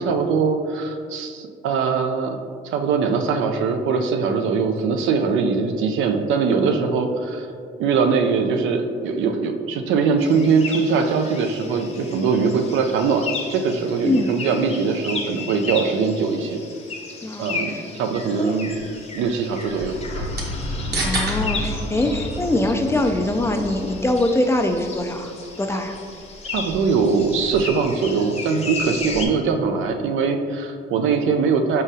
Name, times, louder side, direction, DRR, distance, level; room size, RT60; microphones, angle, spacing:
voice 1, 0.0-7.5 7.8-16.6 17.4-18.7 19.1-20.3 25.7-25.8 26.5-31.8, right 5 dB, 80° right, 5 dB, 0.4 m, -22 dB
sound 1, 10.2-29.3, left 4 dB, 30° left, 0.7 m, -35 dB
voice 2, 14.0-14.3 17.2-17.8 18.4-18.5 21.0-25.3 25.6-26.0, left 1 dB, 15° left, 4 dB, 0.3 m, -23 dB
sound 2, 18.7-29.4, right 2 dB, 55° right, 1.1 m, -36 dB
sound 3, 19.8-25.5, left 1 dB, 85° left, 1.1 m, -32 dB
4.9 x 3.8 x 2.7 m, 2.3 s
cardioid pair, 90°, 20 cm